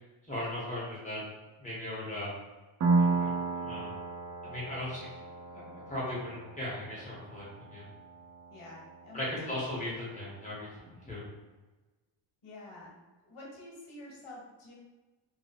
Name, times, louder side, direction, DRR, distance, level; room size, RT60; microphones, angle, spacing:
voice 1, 0.3-1.2 1.6-2.3 3.0-4.0 4.4-7.9 9.1-11.2, left 1 dB, 15° left, -8 dB, 1.4 m, -38 dB
Piano, 2.8-10.2, right 3 dB, 40° right, 0.5 m, -34 dB
voice 2, 8.5-9.6 12.4-12.9 13.2-14.7, left 2 dB, 90° left, -4 dB, 1.5 m, -48 dB
3.1 x 2.5 x 4.1 m, 1.2 s
wide cardioid pair, 160°, 49 cm